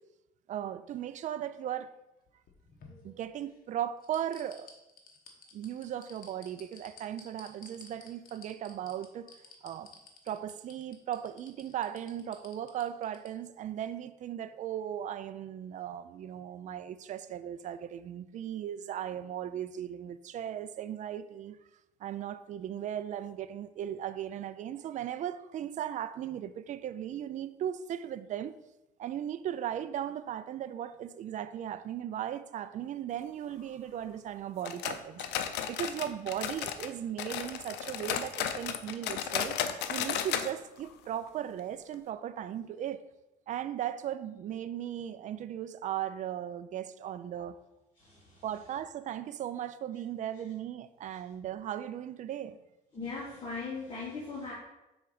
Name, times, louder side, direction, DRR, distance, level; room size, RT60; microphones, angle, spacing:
voice 1, 0.5-1.9 3.0-4.7 5.5-9.4 9.6-9.9 10.3-21.6 22.0-28.5 29.0-35.2 35.7-39.6 39.9-43.0 43.5-47.6 48.4-52.6, right 10 dB, 45° right, 0.4 m, -37 dB
sound 1, 2.3-3.6 4.0-13.3 13.6-13.7, left 5 dB, 55° left, 1.1 m, -54 dB
sound 2, 34.6-36.9 37.2-40.5 40.8-40.9 41.3-41.4 41.9-42.0, left 9 dB, 85° left, 0.5 m, -34 dB
voice 2, 47.9-48.5 52.9-54.5, left 4 dB, 30° left, 2.0 m, -39 dB
5.8 x 4.0 x 4.9 m
cardioid pair, 110°, 17 cm